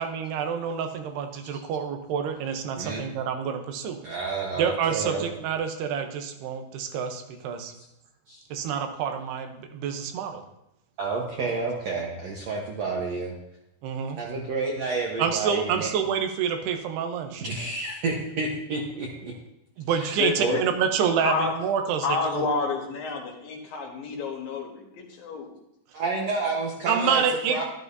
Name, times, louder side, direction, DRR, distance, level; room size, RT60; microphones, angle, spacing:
voice 1, 0.0-4.0 4.6-7.7 8.5-10.4 13.8-14.2 15.2-17.4 19.8-22.5 26.9-27.6, right 7 dB, 85° right, 6 dB, 3.0 m, -27 dB
voice 2, 4.0-5.3 8.3-8.5 11.0-13.4 14.2-15.9 17.4-19.3 19.9-20.6 25.9-27.2 27.5-27.6, right 3 dB, 65° right, -2 dB, 1.7 m, -30 dB
voice 3, 20.2-20.6 21.2-21.5 22.0-25.5, left 4 dB, 70° left, 1 dB, 2.9 m, -29 dB
12.0 x 11.5 x 2.7 m, 0.84 s
omnidirectional pair, 4.6 m